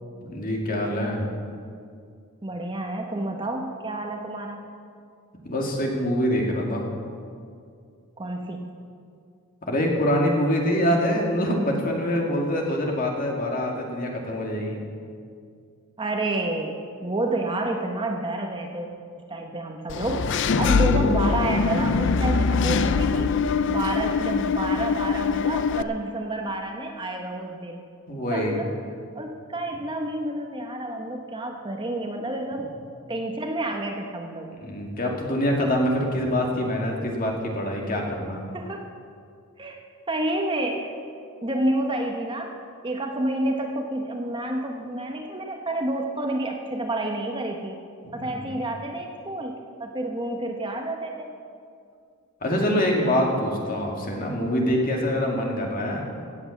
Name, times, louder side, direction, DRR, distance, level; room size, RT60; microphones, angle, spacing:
voice 1, 0.2-1.3 5.4-6.8 9.7-14.8 28.1-28.6 34.6-38.4 48.0-48.5 52.4-56.0, equal, 40° left, 0 dB, 2.2 m, -25 dB
voice 2, 2.4-4.7 8.2-8.8 16.0-18.9 19.3-23.3 23.6-27.8 28.3-28.7 29.1-32.7 33.1-34.5 38.5-38.8 39.6-39.8 40.1-40.9 41.4-42.6 42.8-47.8 48.1-51.3, right 1 dB, 20° right, 2 dB, 0.9 m, -29 dB
Engine / Mechanisms, 19.9-25.8, left 5 dB, 55° left, 0.4 m, -23 dB
17.0 x 8.1 x 7.2 m, 2.3 s
head